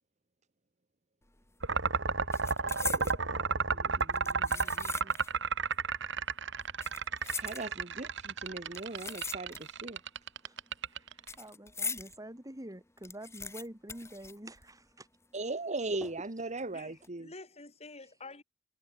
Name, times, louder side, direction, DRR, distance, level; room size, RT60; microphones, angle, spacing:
sound 1, 1.3-1.5 1.8-3.2 4.0-5.4 5.7-5.8 6.6-8.0 8.7-9.9 10.2-12.1 12.5-12.6 12.8-15.0 15.2-15.3 16.0-16.4 16.8-17.1, left 4 dB, 15° left, 2.0 m, -42 dB
sound 2, 1.6-11.3, right 5 dB, 65° right, 3.1 m, -32 dB
voice 1, 2.9-4.9 7.3-9.6 9.8-10.0 15.3-17.3, right 2 dB, 35° right, 1.6 m, -39 dB
voice 2, 11.4-15.1 15.9-16.3, right 1 dB, 20° right, 3.1 m, -46 dB
voice 3, 16.7-18.4, left 3 dB, 35° left, 4.5 m, -49 dB
head